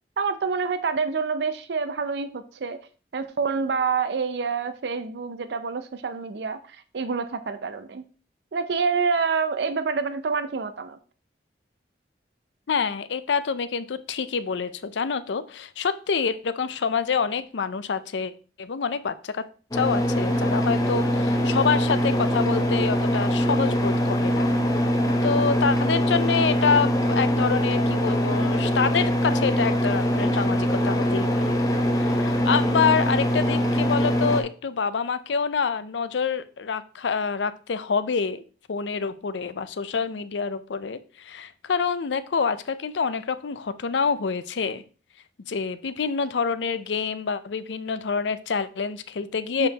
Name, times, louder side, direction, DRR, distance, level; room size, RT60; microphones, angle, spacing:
voice 1, 0.2-2.8 3.1-8.0 8.5-11.0 49.6-49.7, right 5 dB, 70° right, 11 dB, 0.5 m, -27 dB
voice 2, 12.7-18.3 18.6-19.4 19.7-24.5 25.2-31.6 32.0-38.4 38.7-44.8 45.5-49.7, left 5 dB, 85° left, 13 dB, 0.5 m, -27 dB
sound 1, 19.7-34.4, equal, 20° left, 0.8 m, -23 dB
6.7 x 5.5 x 2.9 m, 0.38 s
head